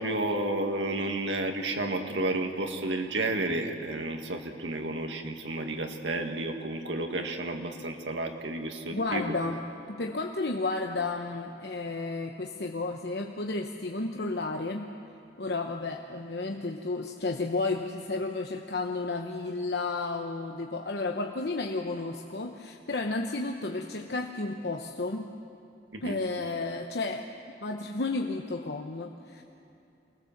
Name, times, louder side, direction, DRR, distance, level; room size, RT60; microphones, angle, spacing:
voice 1, 0.0-9.4 25.9-26.2, right 2 dB, 90° right, 4 dB, 1.9 m, -31 dB
voice 2, 8.9-9.6 9.9-14.9 15.4-25.3 26.0-27.3 27.6-29.4, left 3 dB, 65° left, 3 dB, 1.0 m, -32 dB
24.5 x 19.5 x 7.3 m, 2.7 s
head